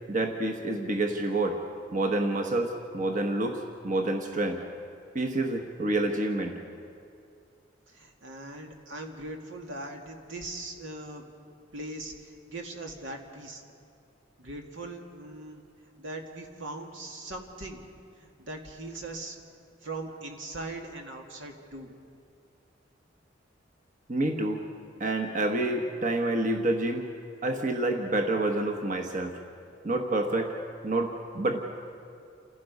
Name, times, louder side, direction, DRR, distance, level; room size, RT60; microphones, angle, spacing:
voice 1, 0.1-1.6 1.9-4.6 5.1-6.6 24.1-24.6 25.0-27.1 27.4-29.4 29.8-30.6 30.8-31.6, right 2 dB, 45° right, 3 dB, 1.3 m, -28 dB
voice 2, 7.9-11.2 11.7-13.6 14.4-15.6 16.0-17.8 18.2-19.4 19.8-21.9, right 2 dB, 85° right, 2 dB, 2.3 m, -40 dB
29.0 x 16.5 x 5.4 m, 2.4 s
head